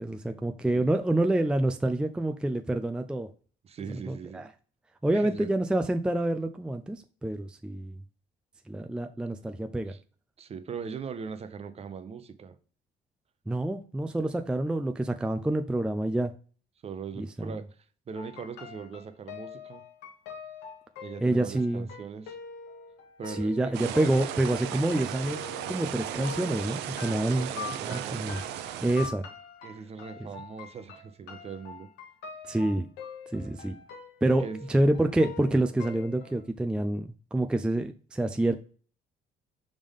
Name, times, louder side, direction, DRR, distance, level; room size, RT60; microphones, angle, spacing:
voice 1, 0.0-3.3 4.1-4.5 5.0-8.0 8.7-9.9 13.5-16.3 17.2-17.5 21.2-21.9 23.3-27.5 27.9-28.4 28.8-29.2 32.5-32.9 33.3-33.8 34.2-38.5, right 1 dB, 5° right, 0.4 m, -27 dB
voice 2, 3.6-4.5 5.1-5.5 9.9-10.0 10.4-12.6 16.8-17.7 18.1-19.8 21.0-22.4 23.2-24.0 27.0-28.3 29.6-31.9 34.4-34.6, right 6 dB, 40° right, 0.7 m, -40 dB
sound 1, 18.1-36.4, left 6 dB, 85° left, 1.1 m, -44 dB
sound 2, 23.7-29.1, right 11 dB, 90° right, 0.6 m, -36 dB
5.1 x 3.6 x 5.3 m
cardioid pair, 110°, 17 cm